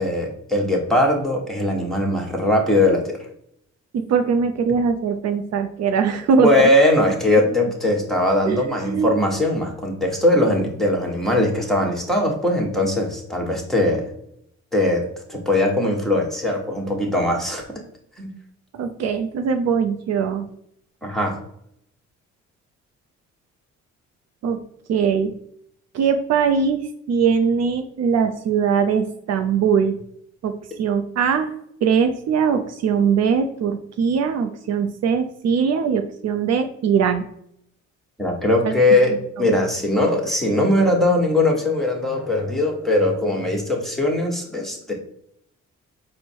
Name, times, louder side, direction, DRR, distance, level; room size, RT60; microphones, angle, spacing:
voice 1, 0.0-3.2 6.4-14.0 14.7-15.0 15.3-17.6 18.2-18.3 21.0-21.3 38.2-44.9, left 1 dB, ahead, 1 dB, 1.2 m, -20 dB
voice 2, 3.9-6.5 8.5-9.1 18.7-20.5 24.4-24.6 24.9-25.3 25.9-30.0 30.4-31.5 31.8-37.2 38.6-38.8, right 6 dB, 60° right, 6 dB, 0.5 m, -21 dB
4.5 x 2.1 x 4.5 m, 0.73 s
cardioid pair, 90°, 30 cm